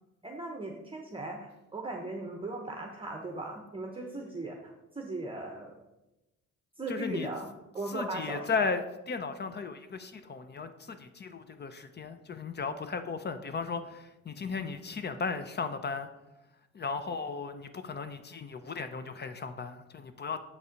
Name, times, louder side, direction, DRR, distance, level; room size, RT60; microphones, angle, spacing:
voice 1, 0.2-5.8 6.8-7.5 7.7-8.7, right 2 dB, 15° right, 2 dB, 0.9 m, -38 dB
voice 2, 6.9-7.3 7.9-16.1 16.7-20.4, left 4 dB, 35° left, 10 dB, 0.6 m, -35 dB
7.3 x 4.1 x 5.1 m, 0.96 s
cardioid pair, 90°, 30 cm